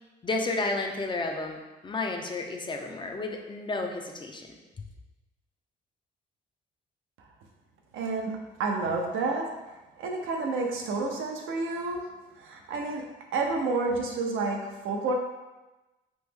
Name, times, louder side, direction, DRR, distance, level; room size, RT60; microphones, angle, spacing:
voice 1, 0.2-4.6, left 2 dB, 25° left, 2 dB, 0.4 m, -32 dB
voice 2, 7.9-9.5 10.0-12.0 12.4-13.0 13.3-15.1, right 3 dB, 85° right, 1 dB, 0.5 m, -29 dB
3.0 x 2.1 x 3.4 m, 1.1 s
cardioid pair, 90°, 20 cm